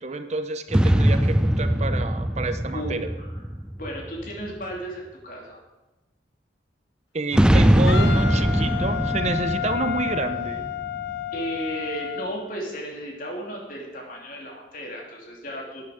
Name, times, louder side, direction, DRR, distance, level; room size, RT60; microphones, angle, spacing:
voice 1, 0.0-3.0 7.1-10.7, right 3 dB, 40° right, 10 dB, 0.6 m, -29 dB
sound 1, 0.7-4.4 7.3-11.1, equal, 5° right, 0.3 m, -21 dB
voice 2, 2.7-3.4 3.8-5.6 11.3-15.9, right 1 dB, 50° left, -1 dB, 2.8 m, -34 dB
Wind instrument woodwind instrument, 7.9-12.3, left 10 dB, 75° left, 0.7 m, -30 dB
11.5 x 9.0 x 5.0 m, 1.0 s
head